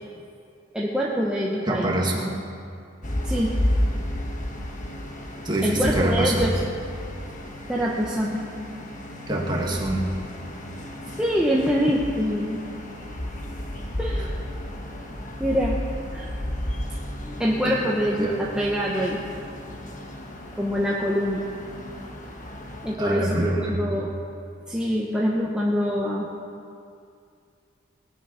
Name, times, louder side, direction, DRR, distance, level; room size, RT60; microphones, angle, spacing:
voice 1, 0.7-1.9 3.3-3.5 5.6-6.6 7.7-8.4 11.2-12.6 14.0-14.3 15.4-15.7 16.0-16.3 17.2-19.2 20.6-21.5 22.8-24.1 24.7-26.3, equal, 5° right, -5 dB, 1.1 m, -25 dB
voice 2, 1.7-2.4 5.4-6.5 9.3-10.1 14.2-14.3 17.6-17.8 18.2-18.4 23.0-23.8, right 1 dB, 20° right, -2 dB, 2.1 m, -25 dB
sound 1, 3.0-23.0, left 1 dB, 35° left, 1.4 m, -32 dB
20.0 x 9.4 x 5.8 m, 2.4 s
head